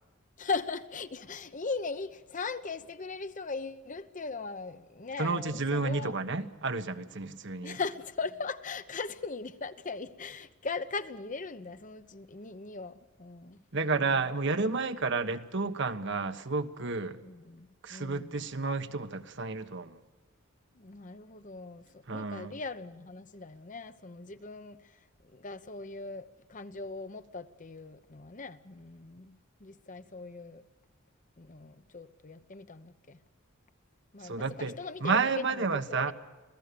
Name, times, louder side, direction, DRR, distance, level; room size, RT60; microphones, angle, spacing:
voice 1, 0.4-6.1 7.6-14.2 17.2-18.4 20.7-25.0 25.3-30.6 31.4-33.2 34.1-36.1, left 4 dB, 40° left, 0.9 m, -39 dB
voice 2, 5.2-7.8 13.7-17.2 17.8-20.0 22.1-22.5 34.2-34.7 35.0-36.1, right 4 dB, 60° right, 1.2 m, -31 dB
26.5 x 17.0 x 6.9 m
head